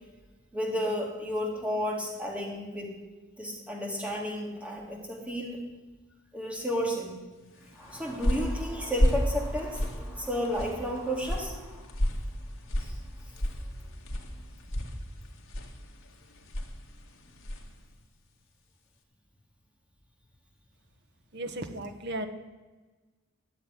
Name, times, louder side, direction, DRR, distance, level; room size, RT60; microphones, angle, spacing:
voice 1, 0.5-2.9 3.4-5.6 6.3-7.1 7.6-12.0 12.8-13.0, equal, 5° right, -1 dB, 2.9 m, -32 dB
sound 1, 7.7-17.8, equal, 70° left, 2.1 m, -32 dB
voice 2, 21.3-22.3, right 1 dB, 55° right, 6 dB, 1.4 m, -35 dB
13.0 x 7.9 x 10.0 m, 1.2 s
head